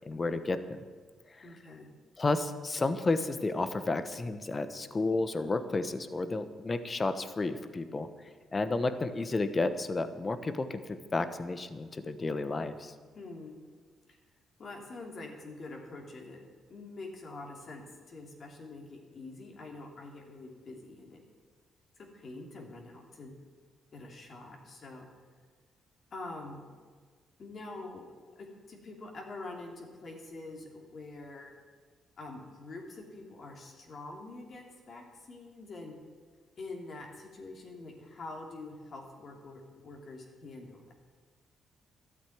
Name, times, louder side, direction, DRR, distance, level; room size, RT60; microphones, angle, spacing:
voice 1, 0.1-0.8 2.2-8.1 8.5-12.9, left 3 dB, 30° left, 11 dB, 1.1 m, -31 dB
voice 2, 1.4-1.9 13.1-13.6 14.1-14.2 14.6-16.4 16.7-21.2 22.0-23.4 23.9-25.1 26.1-26.7 27.4-28.0 28.3-31.5 32.2-36.0 36.6-40.9, left 2 dB, 50° left, 1 dB, 3.0 m, -45 dB
13.0 x 8.3 x 9.3 m, 1.5 s
cardioid pair, 90°, 0 cm